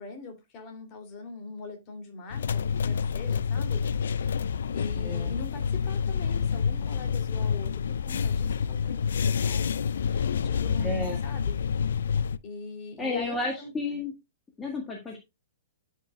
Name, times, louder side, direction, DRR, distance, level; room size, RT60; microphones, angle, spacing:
voice 1, 0.0-4.3 4.7-11.7 12.4-13.7, left 4 dB, 35° left, 2.8 m, -42 dB
sound 1, 2.3-12.4, left 6 dB, 60° left, 0.4 m, -28 dB
voice 2, 5.0-5.3 10.8-11.2 13.0-14.1 14.6-15.2, left 2 dB, 10° left, 1.8 m, -32 dB
13.0 x 5.5 x 2.3 m
figure-of-eight pair, 110°, 0 cm